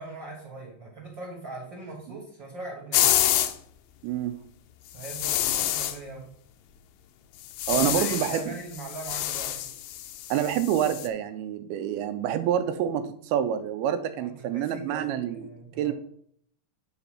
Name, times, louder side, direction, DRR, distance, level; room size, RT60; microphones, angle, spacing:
voice 1, 0.0-3.1 4.9-6.3 7.7-9.7 14.2-15.9, right 2 dB, 50° right, -3 dB, 1.4 m, -41 dB
sound 1, 2.9-3.6 5.0-6.0 7.4-8.5 8.7-11.1, left 12 dB, 80° left, 1.9 m, -27 dB
voice 2, 4.0-4.4 7.7-8.5 10.3-15.5 15.8-15.9, right 10 dB, 85° right, 10 dB, 2.5 m, -27 dB
9.6 x 4.2 x 5.7 m, 0.64 s
omnidirectional pair, 4.5 m